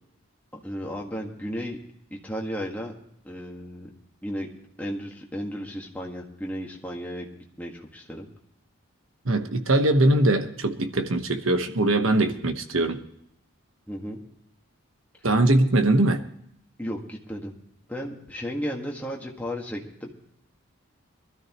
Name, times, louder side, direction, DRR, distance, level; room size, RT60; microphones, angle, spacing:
voice 1, 0.5-1.8 2.1-3.0 3.2-3.9 4.2-4.5 4.8-7.3 7.6-8.3 13.9-14.2 16.8-17.5 17.9-20.1, equal, 5° left, -1 dB, 1.7 m, -34 dB
voice 2, 9.2-13.0 15.2-16.2, right 2 dB, 75° right, 7 dB, 1.2 m, -21 dB
21.5 x 13.0 x 3.1 m, 0.74 s
head